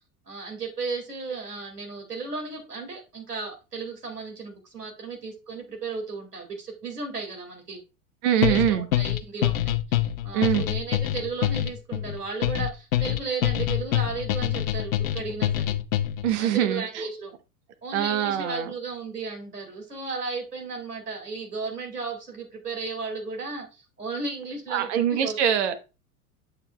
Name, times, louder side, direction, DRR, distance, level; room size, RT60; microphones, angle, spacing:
voice 1, 0.3-7.8 8.3-15.7 16.4-17.3 17.8-25.8, right 4 dB, 85° right, 2.2 m, -35 dB
voice 2, 8.2-8.9 10.3-10.6 16.2-17.0 17.9-18.7 24.7-25.8, right 10 dB, 50° right, 0.9 m, -23 dB
sound 1, 8.4-16.3, left 12 dB, 60° left, 0.7 m, -26 dB
8.2 x 6.9 x 2.2 m
figure-of-eight pair, 85°, 46 cm